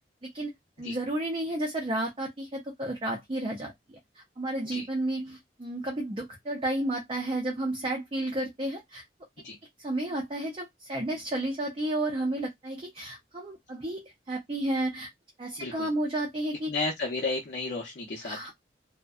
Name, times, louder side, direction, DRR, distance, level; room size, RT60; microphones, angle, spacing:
voice 1, 0.8-4.0 4.4-9.0 9.8-15.1 15.4-16.7 18.2-18.5, right 1 dB, 30° right, 0.4 m, -32 dB
voice 2, 15.6-15.9 16.7-18.5, left 3 dB, 65° left, 0.6 m, -33 dB
2.5 x 2.0 x 2.3 m
head